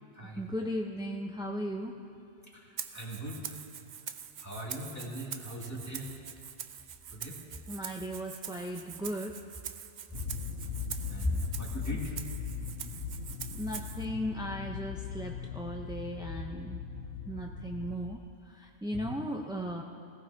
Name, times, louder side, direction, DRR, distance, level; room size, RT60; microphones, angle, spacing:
voice 1, 0.3-1.9 7.7-9.3 12.8-12.9 13.5-16.8 17.3-18.2 18.5-19.8, equal, 5° right, 0 dB, 0.5 m, -36 dB
voice 2, 2.5-3.4 4.4-6.1 7.1-7.4 11.1-12.2 18.9-19.2, equal, 15° left, -4 dB, 2.3 m, -40 dB
Rattle (instrument), 2.8-14.0, right 8 dB, 55° right, 0.5 m, -44 dB
sound 1, 10.1-18.2, left 7 dB, 90° left, 1.0 m, -39 dB
20.0 x 17.0 x 2.8 m, 2.6 s
omnidirectional pair, 1.1 m